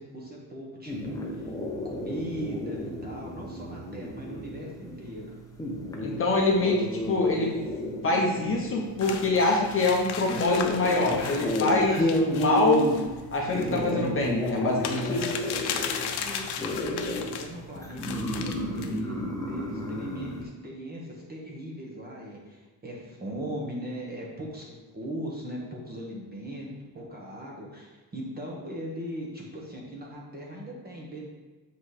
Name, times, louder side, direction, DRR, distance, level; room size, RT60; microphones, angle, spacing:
voice 1, 0.0-1.5 1.8-5.4 16.2-19.2 19.5-26.7 26.9-31.3, right 1 dB, 20° right, -2 dB, 1.1 m, -39 dB
sound 1, 0.9-20.4, equal, 10° left, 0.6 m, -32 dB
voice 2, 6.0-7.5 7.8-13.0 13.3-15.4, left 2 dB, 30° left, -2 dB, 0.9 m, -25 dB
sound 2, 9.0-17.5 18.0-19.0, left 7 dB, 65° left, 0.7 m, -36 dB
7.9 x 3.2 x 4.9 m, 1.3 s
cardioid pair, 180°, 42 cm